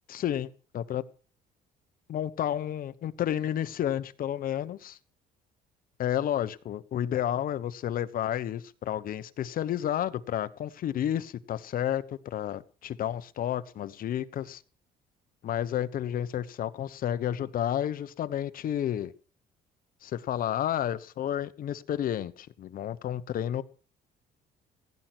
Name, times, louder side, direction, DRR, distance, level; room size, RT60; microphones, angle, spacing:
voice 1, 0.1-1.0 2.1-5.0 6.0-14.6 15.4-19.1 20.0-23.6, left 10 dB, 55° left, 14 dB, 1.2 m, -31 dB
16.5 x 10.5 x 6.1 m, 0.43 s
cardioid pair, 110°, 17 cm